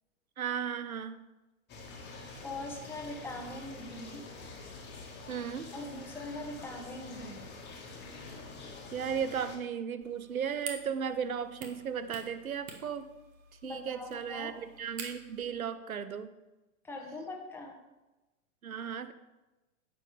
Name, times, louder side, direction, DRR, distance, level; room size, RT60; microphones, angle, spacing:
voice 1, 0.4-1.2 5.3-5.7 8.9-13.1 13.6-16.3 18.6-19.1, right 7 dB, 90° right, 12 dB, 0.7 m, -35 dB
sound 1, 1.7-9.6, left 3 dB, 25° left, 1.5 m, -46 dB
voice 2, 2.4-4.2 5.7-7.5 13.6-14.5 16.8-17.8, left 2 dB, 5° left, 1 dB, 1.0 m, -42 dB
sound 2, 10.0-15.4, right 5 dB, 35° right, 1.3 m, -48 dB
9.6 x 6.8 x 3.3 m, 1.1 s
figure-of-eight pair, 100°, 41 cm